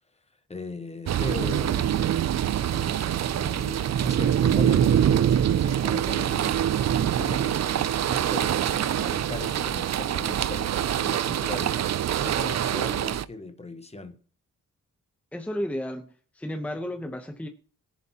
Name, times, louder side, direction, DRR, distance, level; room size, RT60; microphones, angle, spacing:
voice 1, 0.5-1.9 2.7-14.1, left 3 dB, 20° left, 1.2 m, -39 dB
sound 1, 1.1-13.2, right 10 dB, 55° right, 0.5 m, -24 dB
voice 2, 15.3-16.1 16.3-17.5, left 1 dB, 5° left, 1.0 m, -32 dB
22.0 x 7.4 x 2.9 m
wide cardioid pair, 170°, 32 cm